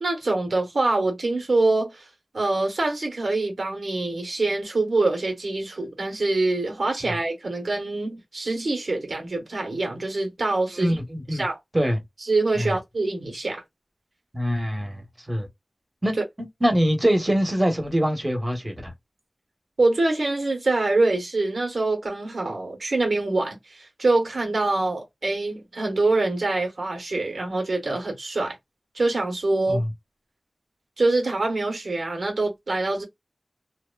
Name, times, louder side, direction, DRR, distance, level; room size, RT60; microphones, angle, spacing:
voice 1, 0.0-2.1 2.3-11.0 11.3-11.6 12.3-13.6 16.2-16.3 19.8-28.6 28.9-29.8 31.0-33.0, right 2 dB, 85° right, 0.8 m, -25 dB
voice 2, 10.8-11.4 11.7-12.0 12.6-12.7 14.3-15.5 16.0-16.1 16.6-18.9 29.7-29.8, equal, 25° right, 1.0 m, -24 dB
2.9 x 2.1 x 2.2 m
wide cardioid pair, 65°, 0 cm